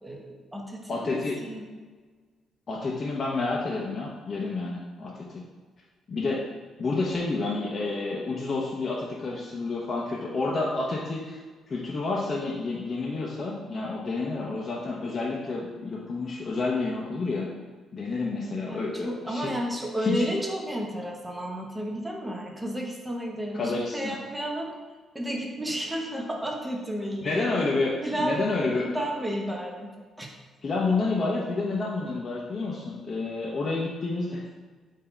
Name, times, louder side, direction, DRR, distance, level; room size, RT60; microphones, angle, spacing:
voice 1, 0.0-1.6 18.7-24.7 25.1-27.5 28.0-29.9 30.2-30.3, equal, 10° right, 0 dB, 0.8 m, -32 dB
voice 2, 0.9-1.4 2.7-5.4 6.1-6.4 6.8-11.4 11.7-17.5 17.9-19.5 20.0-20.1 23.5-24.1 27.2-28.8 30.6-34.4, left 3 dB, 40° left, -4 dB, 0.7 m, -29 dB
3.9 x 2.7 x 4.2 m, 1.4 s
cardioid pair, 90°, 0 cm